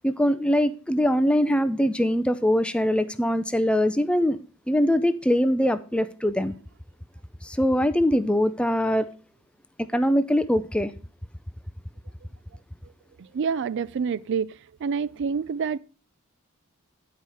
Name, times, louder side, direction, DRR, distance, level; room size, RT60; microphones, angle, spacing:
voice 1, 0.0-4.4 4.7-6.5 7.4-9.1 9.8-10.9, equal, 5° left, 0.5 m, -22 dB
voice 2, 13.2-14.5 14.8-15.8, right 6 dB, 55° right, 0.4 m, -27 dB
10.5 x 4.8 x 5.5 m
head